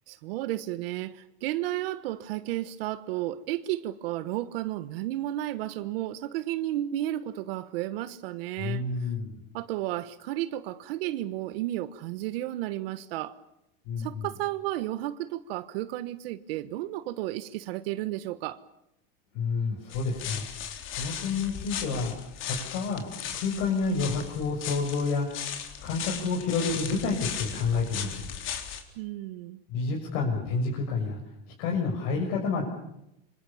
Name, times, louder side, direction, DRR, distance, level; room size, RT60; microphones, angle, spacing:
voice 1, 0.1-9.1 9.5-13.4 14.0-18.6 29.0-29.6, right 14 dB, 75° right, 1.4 m, -33 dB
voice 2, 8.6-9.4 13.9-14.3 19.3-20.4 21.0-22.1 22.4-23.0 23.3-25.3 25.8-28.3 29.7-31.2 31.6-32.6, left 4 dB, 60° left, 7.1 m, -29 dB
sound 1, 19.9-28.8, left 9 dB, 40° left, 3.9 m, -37 dB
26.5 x 26.0 x 7.2 m
supercardioid pair, 140°, 30 cm